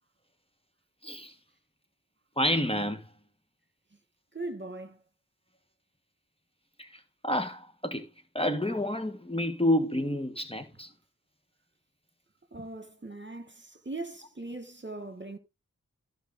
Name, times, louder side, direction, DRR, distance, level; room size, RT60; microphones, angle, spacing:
voice 1, 1.0-1.3 2.4-3.1 6.8-8.0 8.3-10.9, left 1 dB, 15° left, 1.5 m, -29 dB
voice 2, 4.3-5.0 12.5-15.4, right 2 dB, 30° right, 1.8 m, -40 dB
14.5 x 5.4 x 3.8 m
wide cardioid pair, 45°, 35 cm